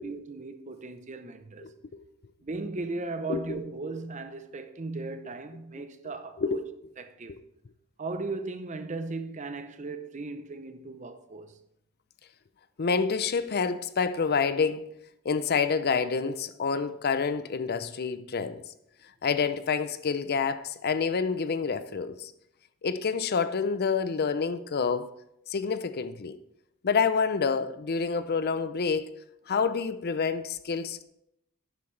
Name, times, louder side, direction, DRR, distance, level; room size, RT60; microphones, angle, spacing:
voice 1, 0.0-1.7 2.4-6.7 7.0-7.4 8.0-11.6, right 3 dB, 35° right, 0.7 m, -37 dB
voice 2, 1.6-2.0 3.3-3.4 6.4-6.6 7.3-7.4 12.8-14.9 15.2-18.6 19.2-22.3 22.8-25.1 25.5-26.4 26.8-29.1 29.5-31.0, left 5 dB, 45° left, 0.5 m, -28 dB
11.0 x 9.5 x 3.2 m
head